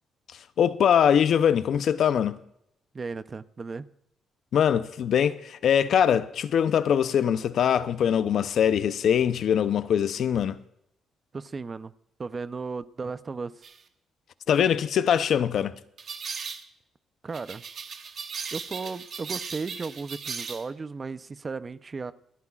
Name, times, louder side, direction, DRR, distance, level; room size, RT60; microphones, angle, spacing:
voice 1, 0.6-2.4 4.5-10.6 14.5-15.7, left 8 dB, 65° left, 0.6 m, -22 dB
voice 2, 2.9-3.9 11.3-11.9 12.2-13.6 17.2-17.6 18.5-22.1, right 4 dB, 35° right, 0.6 m, -35 dB
sound 1, 13.6-13.8 16.0-16.6 17.3-20.7, right 6 dB, 55° right, 1.3 m, -37 dB
28.0 x 9.6 x 2.4 m
cardioid pair, 90°, 0 cm